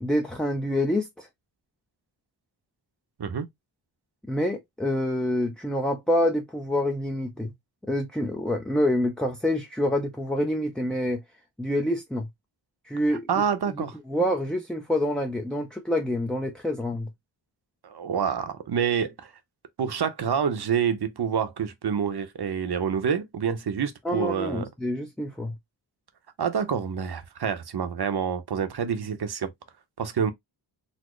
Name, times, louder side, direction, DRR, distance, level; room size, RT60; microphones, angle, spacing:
voice 1, 0.0-1.3 4.3-7.5 7.9-11.2 11.6-12.3 12.9-13.4 13.7-17.1 24.0-25.5, left 1 dB, ahead, 0.5 m, -27 dB
voice 2, 13.3-13.9 17.8-19.3 19.8-24.7 26.4-29.5 30.0-30.3, right 7 dB, 55° right, 0.8 m, -27 dB
4.1 x 2.1 x 3.0 m
wide cardioid pair, 90°, 46 cm